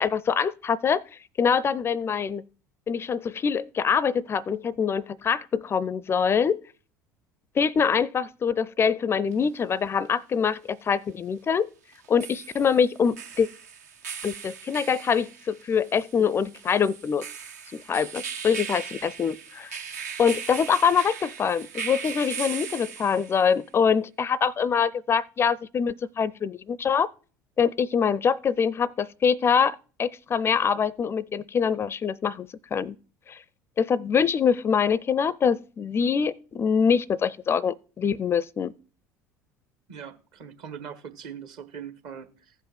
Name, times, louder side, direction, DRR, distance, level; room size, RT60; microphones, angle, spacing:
voice 1, 0.0-2.4 2.9-6.6 7.6-11.7 12.1-13.5 14.2-17.2 17.7-19.8 20.2-27.1 27.6-33.0 33.3-33.4 33.8-38.7, left 6 dB, 25° left, 0.4 m, -24 dB
sound 1, 9.3-9.4 11.9-23.5, right 7 dB, 70° right, 0.8 m, -38 dB
voice 2, 39.9-42.5, right 7 dB, 50° right, 1.4 m, -41 dB
15.0 x 5.4 x 5.9 m
figure-of-eight pair, 65°, 9 cm